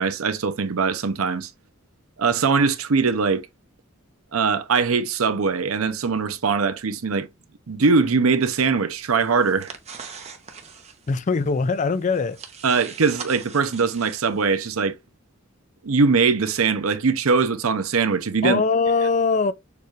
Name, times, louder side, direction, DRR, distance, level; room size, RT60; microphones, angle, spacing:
voice 1, 0.0-1.5 2.2-3.5 4.3-7.3 7.7-9.7 12.6-15.0 15.8-18.6, right 4 dB, 90° right, 0.7 m, -21 dB
sound 1, 9.1-14.6, right 6 dB, 30° right, 0.8 m, -42 dB
voice 2, 11.1-12.4 18.4-19.5, left 4 dB, 35° left, 0.4 m, -21 dB
6.7 x 2.5 x 3.1 m
head